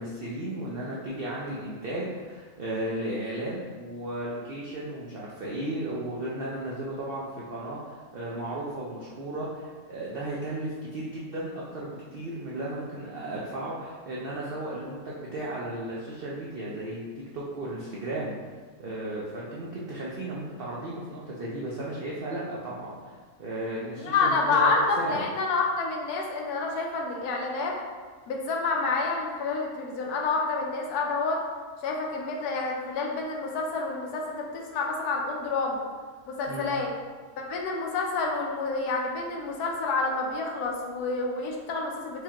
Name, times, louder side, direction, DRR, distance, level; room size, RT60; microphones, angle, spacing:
voice 1, 0.0-17.0 17.3-18.3 18.8-25.2 36.5-36.7, right 1 dB, 75° right, -5 dB, 0.5 m, -35 dB
voice 2, 24.0-27.8 28.3-31.4 31.8-35.8 36.3-36.9 37.4-42.2, left 3 dB, 85° left, 0 dB, 1.1 m, -28 dB
4.7 x 2.3 x 2.8 m, 1.5 s
omnidirectional pair, 1.6 m